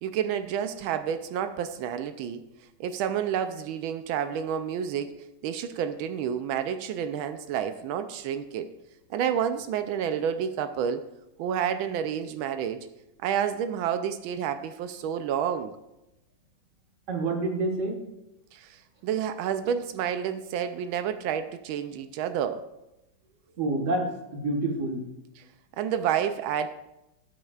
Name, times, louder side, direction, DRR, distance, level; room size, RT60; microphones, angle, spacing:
voice 1, 0.0-2.4 2.8-5.2 5.4-8.7 9.1-11.0 11.4-12.9 13.2-15.7 18.5-22.7 25.4-25.5 25.8-26.7, right 8 dB, 85° right, 9 dB, 1.4 m, -29 dB
voice 2, 17.1-18.0 23.6-24.1 24.3-25.0, right 2 dB, 40° right, 1 dB, 1.7 m, -27 dB
17.5 x 8.5 x 2.4 m, 0.91 s
omnidirectional pair, 2.2 m